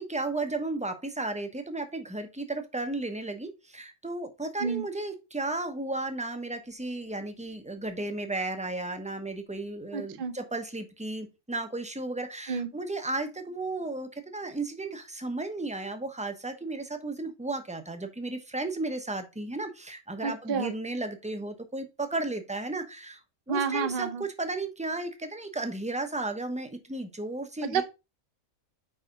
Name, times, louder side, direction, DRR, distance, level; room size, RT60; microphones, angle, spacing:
voice 1, 0.0-23.2 23.5-27.8, right 2 dB, 5° right, 0.6 m, -34 dB
voice 2, 9.9-10.3 12.5-12.7 20.2-20.7 23.5-24.2 27.6-27.8, right 6 dB, 45° right, 0.8 m, -29 dB
5.0 x 4.8 x 5.1 m
omnidirectional pair, 1.5 m